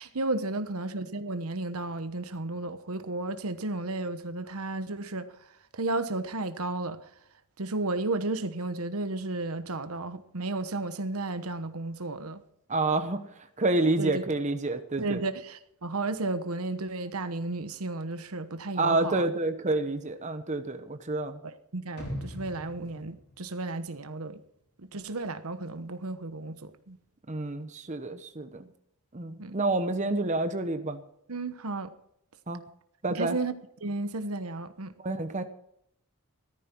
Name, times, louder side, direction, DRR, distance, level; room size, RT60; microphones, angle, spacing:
voice 1, 0.0-5.3 5.7-7.0 7.6-12.4 14.0-14.2 15.0-19.3 21.7-24.4 24.9-27.0 29.4-29.6 31.3-31.9 33.1-33.5 33.8-34.9, right 2 dB, 80° right, 1.1 m, -33 dB
voice 2, 12.7-13.3 13.6-15.2 18.8-21.4 27.3-28.7 29.1-31.0 32.5-32.6 33.0-33.4 35.0-35.4, right 2 dB, 35° right, 1.0 m, -28 dB
sound 1, 22.0-24.1 24.5-24.6, equal, 50° left, 4.9 m, -41 dB
15.0 x 13.5 x 4.6 m
head